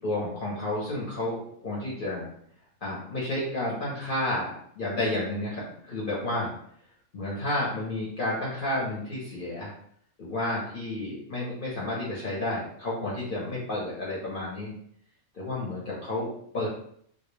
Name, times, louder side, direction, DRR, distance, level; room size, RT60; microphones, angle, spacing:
voice 1, 0.0-2.3 2.8-4.5 4.8-6.5 7.1-9.7 10.2-14.7 15.3-16.3 16.5-16.7, left 1 dB, 50° left, -6 dB, 0.7 m, -31 dB
2.3 x 2.0 x 3.0 m, 0.65 s
omnidirectional pair, 1.5 m